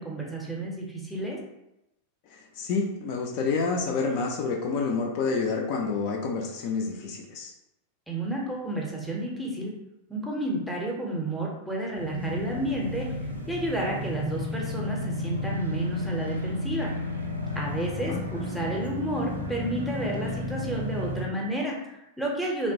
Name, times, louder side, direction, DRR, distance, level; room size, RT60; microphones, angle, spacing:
voice 1, 0.0-1.4 8.1-9.7 10.1-13.1 13.5-16.9 17.5-22.7, right 1 dB, ahead, -3 dB, 0.6 m, -31 dB
voice 2, 2.3-7.5 17.9-18.2, left 4 dB, 45° left, 0 dB, 0.4 m, -29 dB
sound 1, 12.0-21.3, left 1 dB, 85° right, 0.4 m, -32 dB
2.8 x 2.1 x 2.7 m, 0.88 s
figure-of-eight pair, 90°, 0 cm